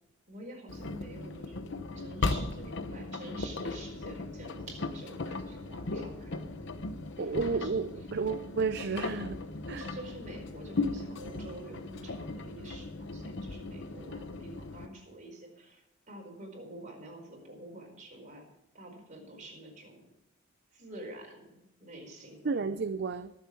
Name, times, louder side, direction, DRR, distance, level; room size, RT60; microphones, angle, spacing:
voice 1, 0.3-6.5 7.2-7.8 9.7-18.5 18.7-20.1 20.7-22.7, right 1 dB, 40° right, 4.8 m, -48 dB
Engine, 0.7-14.9, left 3 dB, 65° left, 1.0 m, -37 dB
voice 2, 7.2-9.4 9.7-9.9 22.4-23.3, right 4 dB, 55° right, 0.5 m, -32 dB
22.5 x 7.8 x 4.7 m
head